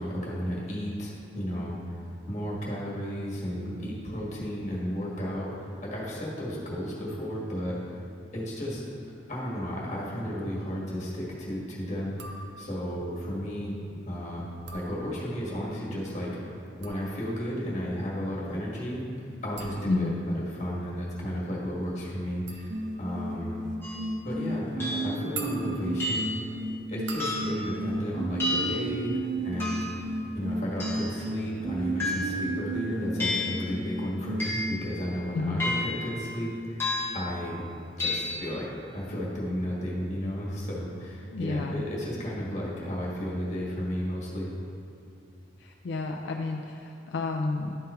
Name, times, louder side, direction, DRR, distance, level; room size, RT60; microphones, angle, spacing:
voice 1, 0.0-2.0 2.3-7.8 8.3-8.8 9.3-13.8 14.1-14.5 14.7-16.3 16.8-19.0 19.4-23.6 24.2-26.4 26.9-29.2 29.4-37.6 38.0-44.5, equal, 40° left, -5 dB, 1.7 m, -33 dB
sound 1, 12.2-12.9 14.5-15.6 16.5-29.3 29.5-30.1, right 4 dB, 85° right, 0.7 m, -46 dB
voice 2, 19.9-20.3 35.3-35.7 41.3-41.9 45.6-47.8, left 3 dB, 75° left, 1 dB, 0.4 m, -31 dB
sound 2, 22.7-34.8, right 1 dB, 45° right, 0.4 m, -33 dB
sound 3, 23.8-24.1 24.8-25.2 26.0-26.5 27.2-27.6 28.4-28.9 29.6-30.0 30.8-31.2 32.0-32.5 33.2-33.6 34.4-34.8 35.6-36.1 36.8-37.3 38.0-38.4, left 2 dB, 15° left, 1.0 m, -31 dB
11.0 x 3.8 x 4.2 m, 2.6 s
head